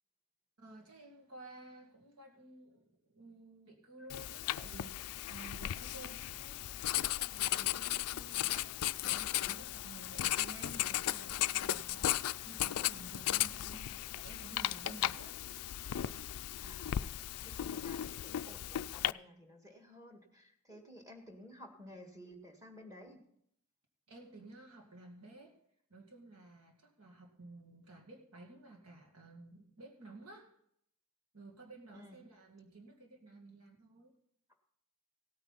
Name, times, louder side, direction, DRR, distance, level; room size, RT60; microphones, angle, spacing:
voice 1, 0.6-15.4 24.1-25.6 25.9-30.5 31.3-34.1, right 2 dB, 80° right, 1 dB, 2.2 m, -54 dB
Writing, 4.1-19.1, left 13 dB, 80° left, 0.4 m, -36 dB
voice 2, 16.6-23.2 31.9-32.2, left 1 dB, 15° right, 2 dB, 1.9 m, -54 dB
17.0 x 9.2 x 4.1 m, 0.70 s
head